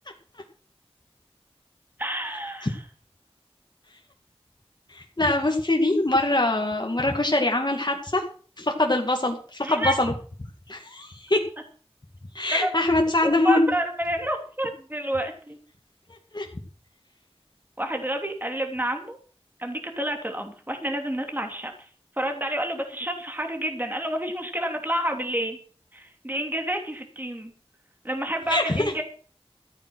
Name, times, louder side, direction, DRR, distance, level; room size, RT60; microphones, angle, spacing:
voice 1, 2.0-2.8 9.6-9.9 12.5-12.8 13.2-15.6 17.8-19.2 19.6-21.9 22.2-25.6 25.9-27.5 28.0-29.0, right 1 dB, 20° right, 3 dB, 2.9 m, -29 dB
voice 2, 4.9-8.3 8.6-10.1 10.7-11.4 12.3-13.7 16.3-16.5 28.5-28.9, left 2 dB, 45° left, 1 dB, 2.2 m, -23 dB
14.0 x 9.4 x 6.2 m, 0.42 s
wide cardioid pair, 45°, 10 cm